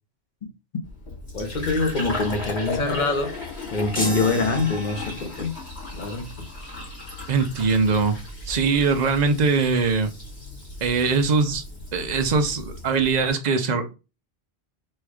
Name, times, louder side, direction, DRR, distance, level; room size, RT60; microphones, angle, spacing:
Fill (with liquid), 0.8-13.3, left 3 dB, 85° left, 2.2 m, -36 dB
voice 1, 1.3-3.3 3.7-5.6 5.9-6.3, left 3 dB, 50° left, 1.0 m, -25 dB
sound 1, 3.9-5.4, equal, 10° left, 1.2 m, -32 dB
voice 2, 7.3-8.2 8.5-10.1 10.8-11.6 11.9-13.9, right 4 dB, 45° right, 0.7 m, -21 dB
4.3 x 2.4 x 4.8 m
omnidirectional pair, 1.1 m